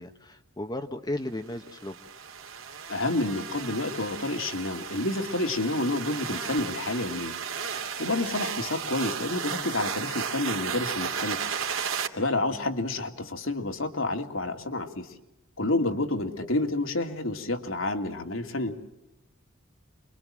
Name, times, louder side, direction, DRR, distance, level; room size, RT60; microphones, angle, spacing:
voice 1, 0.0-2.0 8.1-8.3 12.6-12.7 16.4-16.6, left 1 dB, 20° left, 7 dB, 1.1 m, -35 dB
sound 1, 1.6-12.1, right 6 dB, 75° right, 2.7 m, -34 dB
voice 2, 2.9-7.4 7.6-11.4 11.9-15.1 15.6-18.8, left 2 dB, 75° left, 5 dB, 2.7 m, -29 dB
29.0 x 23.5 x 7.6 m, 0.92 s
head